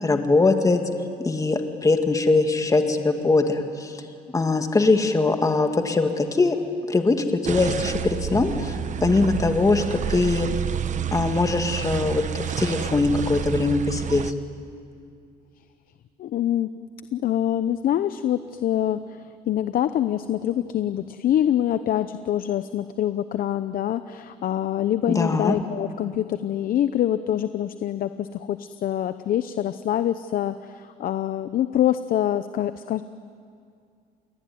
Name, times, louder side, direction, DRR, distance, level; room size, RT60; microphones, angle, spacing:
voice 1, 0.0-0.8 1.2-3.9 4.3-6.6 6.9-8.7 9.0-10.5 11.1-14.3 25.1-25.5, left 3 dB, 20° left, 5 dB, 2.2 m, -21 dB
sound 1, 7.4-14.3, right 9 dB, 45° right, 1.0 m, -29 dB
voice 2, 16.2-16.7 17.1-33.0, left 11 dB, 60° left, 12 dB, 0.8 m, -25 dB
29.0 x 20.5 x 9.4 m, 2.4 s
cardioid pair, 110°, 17 cm